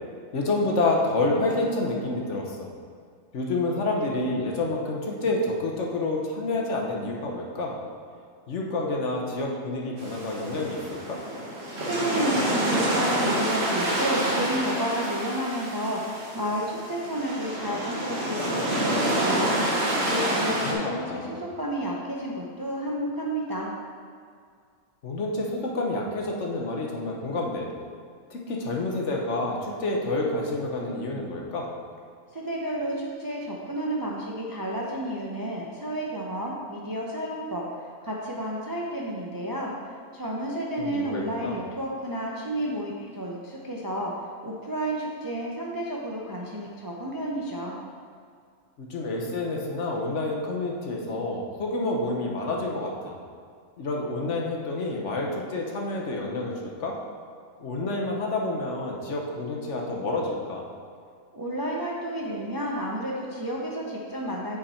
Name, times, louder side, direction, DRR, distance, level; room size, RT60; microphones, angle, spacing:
voice 1, 0.3-2.7 3.3-7.8 8.5-11.2 20.4-21.4 25.0-27.7 28.3-31.7 40.8-41.6 48.8-53.1 53.8-57.0 57.6-60.7, left 2 dB, 55° left, -1 dB, 1.2 m, -28 dB
sound 1, 10.0-20.7, right 1 dB, 45° right, 1.5 m, -28 dB
voice 2, 11.8-19.6 20.1-23.7 32.3-37.6 38.0-39.7 40.1-44.1 44.4-47.8 61.3-64.6, equal, 25° right, -3 dB, 0.5 m, -31 dB
8.2 x 5.1 x 4.3 m, 2.2 s
omnidirectional pair, 1.6 m